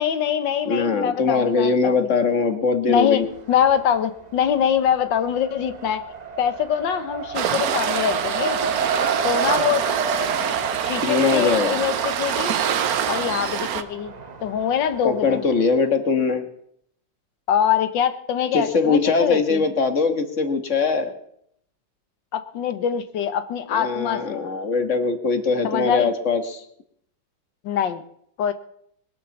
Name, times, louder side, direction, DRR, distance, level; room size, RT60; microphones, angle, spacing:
voice 1, 0.0-2.1 2.9-3.2 3.5-6.0 6.4-8.6 9.2-9.9 10.8-12.5 13.1-14.1 14.4-15.4 17.5-19.6 22.3-24.5 25.6-26.1 27.6-28.0 28.4-28.5, left 9 dB, 80° left, 10 dB, 1.7 m, -23 dB
voice 2, 0.7-3.3 11.0-11.8 15.0-16.5 18.5-21.1 23.7-26.6, left 4 dB, 45° left, 8 dB, 1.7 m, -21 dB
Race car auto racing, 3.2-4.0 4.3-15.6, right 5 dB, 35° right, 0.6 m, -31 dB
Waves surf, 7.3-13.8, right 8 dB, 60° right, 1.2 m, -25 dB
21.0 x 8.4 x 7.0 m, 0.70 s
omnidirectional pair, 2.0 m